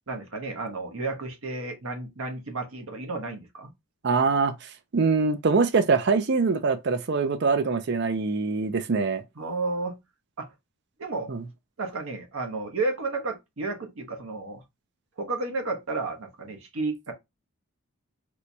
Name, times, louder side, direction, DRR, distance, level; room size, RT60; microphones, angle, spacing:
voice 1, 0.1-3.7 9.4-10.0 10.4-10.5 11.0-11.3 11.8-14.6 15.2-17.1, right 3 dB, 70° right, 0.9 m, -32 dB
voice 2, 4.0-9.2 11.3-11.4, right 4 dB, 50° right, 0.5 m, -24 dB
4.4 x 2.2 x 2.6 m
head